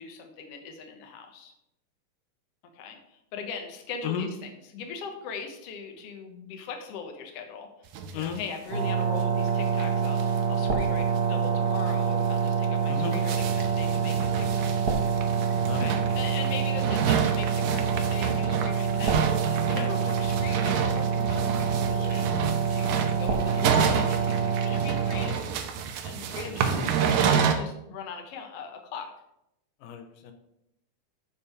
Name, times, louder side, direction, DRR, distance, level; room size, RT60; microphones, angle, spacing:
voice 1, 0.0-1.5 2.6-7.7 8.1-14.9 15.7-25.5 26.0-29.1, left 5 dB, 60° left, 4 dB, 1.8 m, -40 dB
sound 1, 7.9-8.4 8.7-8.8 9.0-9.1 9.5-9.6 9.8-10.4 10.7-10.8 11.2-11.3 11.8-11.9 12.5-27.5, right 7 dB, 80° right, 2.4 m, -29 dB
sound 2, 8.7-25.3, right 6 dB, 55° right, 1.1 m, -26 dB
voice 2, 12.9-13.2 15.7-16.2 19.6-20.2 26.4-27.0 29.8-30.3, left 8 dB, 90° left, 5 dB, 2.5 m, -35 dB
7.2 x 6.7 x 5.4 m, 0.83 s
omnidirectional pair, 3.8 m